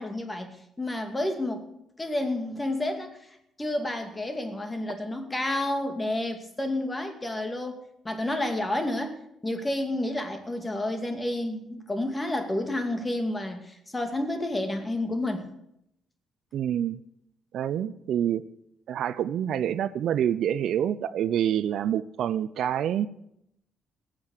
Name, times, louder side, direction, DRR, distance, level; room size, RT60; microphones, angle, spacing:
voice 1, 0.0-1.7 2.0-7.8 8.0-15.5, left 1 dB, 20° left, 6 dB, 2.3 m, -30 dB
voice 2, 16.5-17.0 17.5-18.4 18.9-23.1, right 10 dB, 70° right, 15 dB, 0.6 m, -27 dB
18.5 x 7.6 x 6.6 m, 0.77 s
cardioid pair, 90°, 0 cm